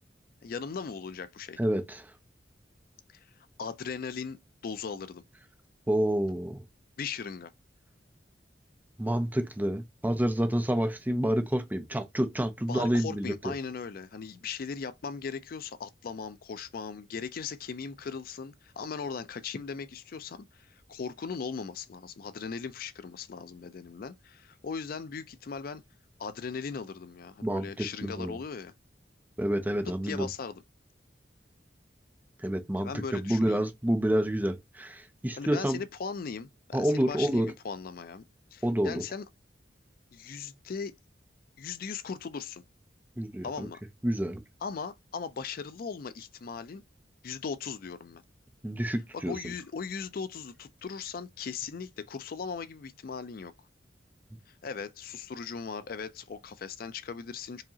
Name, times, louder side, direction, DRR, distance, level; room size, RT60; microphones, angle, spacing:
voice 1, 0.4-1.6 3.1-3.3 3.6-5.2 7.0-7.5 12.7-25.8 26.2-28.7 29.9-30.6 32.8-33.6 35.4-38.2 38.5-39.3 40.1-40.9 41.6-42.6 43.4-43.8 44.6-46.8 47.2-48.2 49.1-53.5 54.6-57.6, left 5 dB, 55° left, 0.4 m, -38 dB
voice 2, 1.6-2.0 5.9-6.6 9.0-13.5 27.4-28.4 29.4-30.3 32.4-35.8 36.7-37.5 38.6-39.0 43.2-43.7 44.0-44.4 48.6-49.3, right 1 dB, 10° right, 0.5 m, -28 dB
4.7 x 2.9 x 2.8 m
head